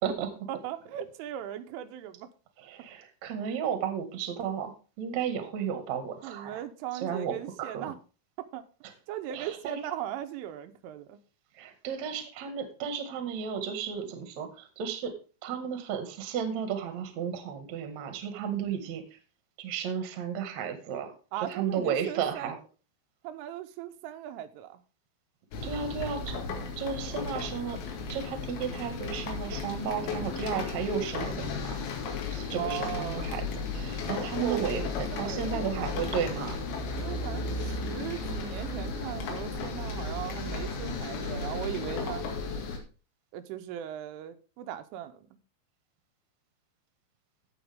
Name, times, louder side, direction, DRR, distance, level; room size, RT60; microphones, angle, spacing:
voice 1, 0.5-2.3 6.2-8.0 8.4-8.6 9.1-11.2 21.3-22.5 23.2-24.8 32.6-33.3 34.4-36.1 36.9-42.3 43.3-45.3, right 11 dB, 85° right, 3.3 m, -38 dB
voice 2, 2.6-6.6 6.9-7.9 9.3-9.8 11.6-15.1 15.4-19.0 19.6-21.1 21.5-22.6 25.6-26.3 26.8-27.8 28.1-31.8 32.3-33.5 33.7-36.6, right 7 dB, 55° right, 2.1 m, -33 dB
sound 1, 25.5-42.8, left 4 dB, 90° left, 4.6 m, -34 dB
16.5 x 6.1 x 3.5 m
omnidirectional pair, 5.7 m